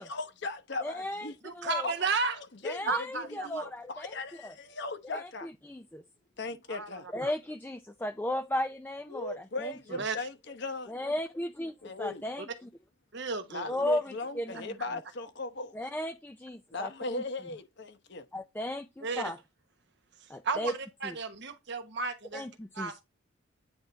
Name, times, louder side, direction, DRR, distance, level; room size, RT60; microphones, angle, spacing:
voice 1, 0.0-1.4 1.8-5.5 6.4-7.1 9.1-10.9 11.8-12.3 13.5-15.8 16.7-18.3, left 2 dB, 55° left, 0.9 m, -38 dB
voice 2, 0.8-1.9 2.6-4.1 4.4-4.5 5.1-6.0 7.1-9.7 10.9-12.7 13.7-14.8 15.7-17.2 18.3-19.4 20.3-20.7 21.0-21.2 22.3-22.9, left 1 dB, 10° left, 0.4 m, -35 dB
voice 3, 1.4-2.4 2.8-3.6 6.7-7.3 9.9-10.3 12.4-12.5 13.1-13.8 19.0-19.3 20.4-22.4 22.7-23.0, right 4 dB, 55° right, 1.1 m, -33 dB
8.7 x 3.5 x 3.9 m
head